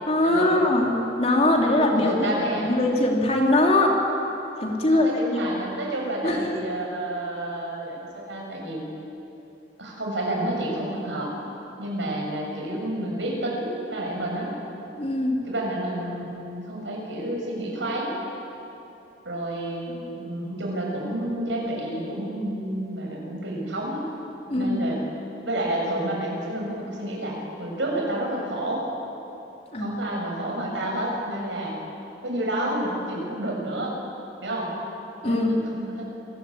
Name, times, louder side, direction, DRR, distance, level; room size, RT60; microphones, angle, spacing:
voice 1, 0.1-2.2 2.5-3.9 4.6-5.4 6.2-6.6 15.0-15.4 19.9-20.0 24.5-24.8 29.7-30.0 35.2-35.6, left 1 dB, 35° left, 0 dB, 3.3 m, -22 dB
voice 2, 1.9-2.7 4.8-8.8 9.8-11.3 11.8-14.5 15.5-18.1 19.2-24.0 24.5-25.0 25.4-28.8 29.8-31.7 32.2-33.9 34.4-34.7 35.2-35.4 35.7-36.1, right 1 dB, 90° right, -1 dB, 7.2 m, -30 dB
27.0 x 19.0 x 8.7 m, 3.0 s
head